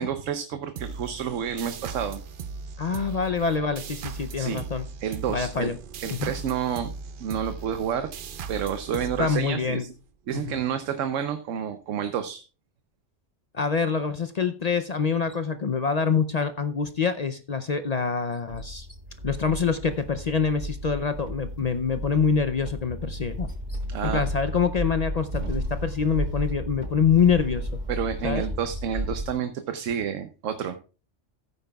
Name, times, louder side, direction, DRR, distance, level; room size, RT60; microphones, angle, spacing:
voice 1, 0.0-2.2 4.4-4.6 5.0-5.7 6.0-6.9 7.2-8.1 8.5-9.9 10.3-12.4 23.9-24.2 27.9-30.8, right 8 dB, 90° right, 9 dB, 1.1 m, -29 dB
sound 1, 0.7-10.0, right 5 dB, 55° right, 0.7 m, -38 dB
voice 2, 2.8-4.9 5.3-5.8 6.1-6.3 9.2-9.8 10.3-10.6 13.5-18.9 19.2-27.8 28.2-28.4, left 6 dB, 50° left, 9 dB, 0.5 m, -25 dB
sound 2, 18.5-29.3, equal, 40° right, 1.5 m, -33 dB
15.0 x 8.9 x 2.3 m, 0.34 s
omnidirectional pair, 1.3 m